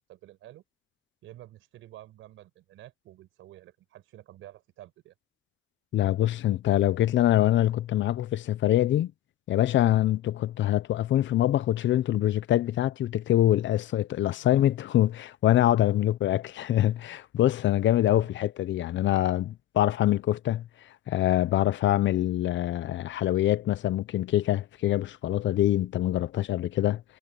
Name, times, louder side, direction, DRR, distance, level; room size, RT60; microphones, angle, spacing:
voice 1, 0.1-0.6 1.2-5.1 14.3-14.5 16.0-16.1 18.2-18.3, right 14 dB, 90° right, 5.1 m, -50 dB
voice 2, 5.9-9.1 9.5-20.6 21.1-27.0, left 13 dB, 70° left, 0.7 m, -24 dB
cardioid pair, 90°, 20 cm